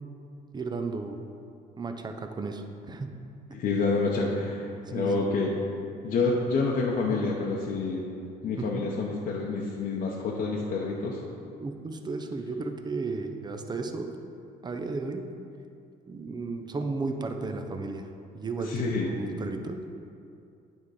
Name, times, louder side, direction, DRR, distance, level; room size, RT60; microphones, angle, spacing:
voice 1, 0.5-1.2 1.8-3.1 5.0-5.2 8.6-8.9 11.6-14.1 14.6-15.3 16.1-18.1 18.3-19.8, right 3 dB, 25° right, 6 dB, 0.6 m, -34 dB
voice 2, 3.5-5.5 6.0-8.0 8.4-11.2 18.6-19.1, left 3 dB, 55° left, -3 dB, 0.8 m, -28 dB
9.1 x 3.7 x 4.8 m, 2.5 s
cardioid pair, 110°, 17 cm